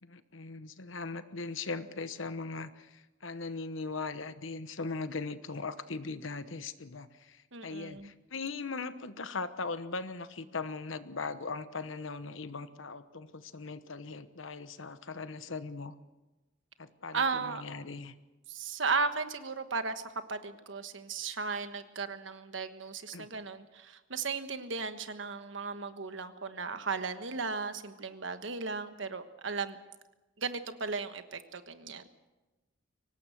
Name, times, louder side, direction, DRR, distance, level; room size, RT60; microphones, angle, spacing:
voice 1, 0.0-16.0 16.8-18.1 23.1-23.3, left 4 dB, 75° left, 12 dB, 1.1 m, -39 dB
voice 2, 7.5-8.1 17.1-17.6 18.5-20.0 20.3-29.8 30.4-32.0, right 4 dB, 70° right, 9 dB, 1.3 m, -35 dB
24.0 x 18.5 x 6.5 m, 1.1 s
head